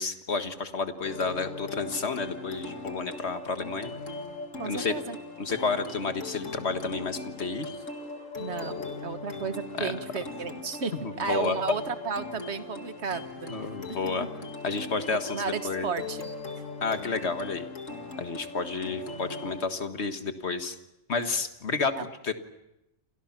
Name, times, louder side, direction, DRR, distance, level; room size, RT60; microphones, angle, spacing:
voice 1, 0.0-3.9 4.6-4.9 5.4-7.7 8.6-9.0 9.8-9.9 11.0-11.6 13.5-14.3 14.6-15.9 16.8-17.7 18.2-20.8 21.1-22.0 22.2-22.3, left 4 dB, 60° left, 8 dB, 1.9 m, -31 dB
sound 1, 1.0-19.7, left 3 dB, 80° left, 2.4 m, -39 dB
voice 2, 4.6-5.2 8.4-13.5 15.3-16.3 22.0-22.1, right 5 dB, 60° right, 10 dB, 1.7 m, -33 dB
29.5 x 26.5 x 6.0 m, 0.89 s
omnidirectional pair, 1.3 m